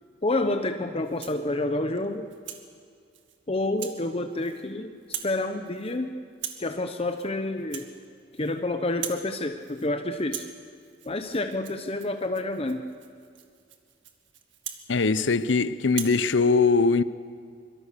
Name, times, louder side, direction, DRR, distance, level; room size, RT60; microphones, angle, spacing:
voice 1, 0.2-2.3 3.5-5.0 5.2-6.1 6.6-7.9 8.4-10.5 11.0-12.9, left 2 dB, 30° left, 0.9 m, -28 dB
Rattle (instrument), 1.0-1.5 2.0-2.7 3.1-3.4 3.8-4.0 4.3-4.7 5.0-5.4 5.6-6.0 6.3-6.7 7.1-7.3 7.6-8.6 8.9-9.3 9.6-9.9 10.2-15.5 15.9-16.2, right 9 dB, 75° right, 2.1 m, -41 dB
voice 2, 14.9-17.0, left 4 dB, 75° left, 0.7 m, -21 dB
25.0 x 23.0 x 6.8 m
head